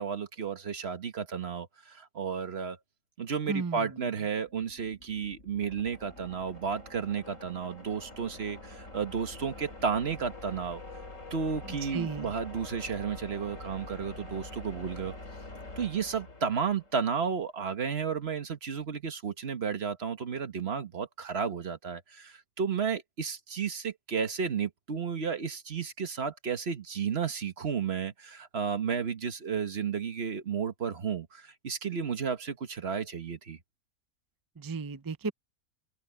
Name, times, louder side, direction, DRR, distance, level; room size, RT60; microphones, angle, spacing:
voice 1, 0.0-2.8 3.2-10.8 11.3-15.1 15.8-33.6, right 6 dB, 50° right, 1.5 m, -33 dB
voice 2, 3.5-4.1 11.6-12.3 34.6-35.3, right 4 dB, 30° right, 0.4 m, -35 dB
sound 1, 4.4-17.1, left 2 dB, 65° left, 3.5 m, -46 dB
open air
omnidirectional pair, 1.5 m